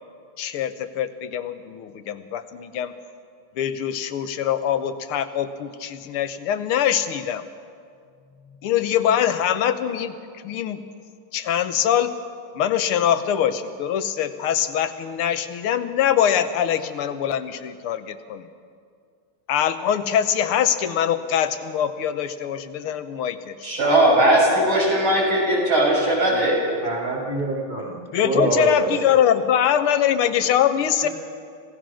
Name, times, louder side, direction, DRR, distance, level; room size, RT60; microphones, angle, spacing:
voice 1, 0.4-2.9 3.6-7.4 8.6-10.1 10.4-10.8 11.3-12.1 12.6-18.5 19.5-23.7 28.1-31.1, left 9 dB, 85° left, 10 dB, 1.9 m, -23 dB
voice 2, 23.6-26.6, right 1 dB, 70° right, -4 dB, 7.1 m, -18 dB
voice 3, 26.8-28.0 28.2-28.9 31.0-31.1, right 2 dB, 20° right, 0 dB, 3.0 m, -25 dB
26.0 x 17.5 x 6.3 m, 2.2 s
omnidirectional pair, 2.3 m